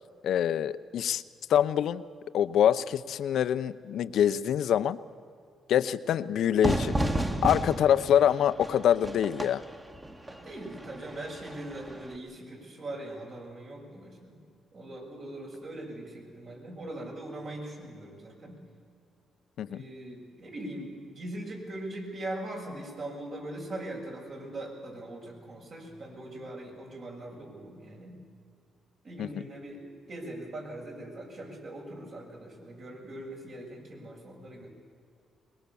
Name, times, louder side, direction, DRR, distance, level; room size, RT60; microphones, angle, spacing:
voice 1, 0.2-1.2 1.5-2.0 2.3-5.0 5.7-6.9 7.4-9.6 19.6-19.8 29.2-29.3, left 9 dB, 70° left, 14 dB, 0.7 m, -25 dB
Fire / Fireworks, 6.6-12.2, right 1 dB, 20° right, 1.8 m, -33 dB
voice 2, 10.2-14.4 14.7-18.6 19.6-28.2 29.0-34.7, right 1 dB, 55° right, -1 dB, 7.0 m, -41 dB
23.0 x 21.5 x 7.1 m, 2.4 s
cardioid pair, 90°, 0 cm